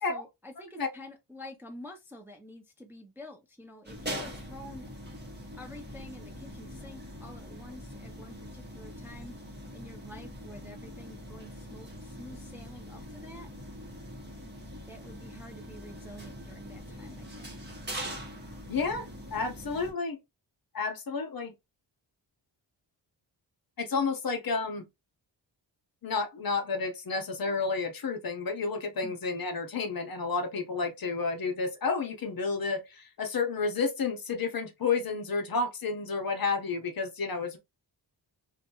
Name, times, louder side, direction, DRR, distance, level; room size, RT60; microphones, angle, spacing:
voice 1, 0.1-4.9 5.6-9.4 9.7-13.5 14.9-17.5 29.0-29.2, left 1 dB, 5° right, 0.4 m, -48 dB
sound 1, 3.8-19.9, equal, 25° right, 0.9 m, -43 dB
voice 2, 18.7-20.2 20.7-21.5 23.8-24.8 26.0-37.6, left 4 dB, 50° left, 0.8 m, -31 dB
2.7 x 2.2 x 2.7 m
wide cardioid pair, 130°, 44 cm